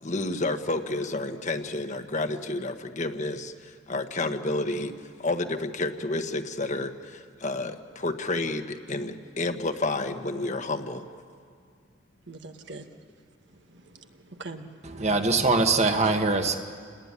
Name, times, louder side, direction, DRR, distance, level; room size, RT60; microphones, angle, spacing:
voice 1, 0.0-4.9 5.2-11.1, left 2 dB, 40° left, 7 dB, 1.3 m, -30 dB
voice 2, 12.3-12.9 13.5-15.0, right 3 dB, 60° right, 6 dB, 1.5 m, -43 dB
voice 3, 14.8-16.6, right 3 dB, 35° right, 5 dB, 1.6 m, -23 dB
28.5 x 19.0 x 9.8 m, 2.1 s
head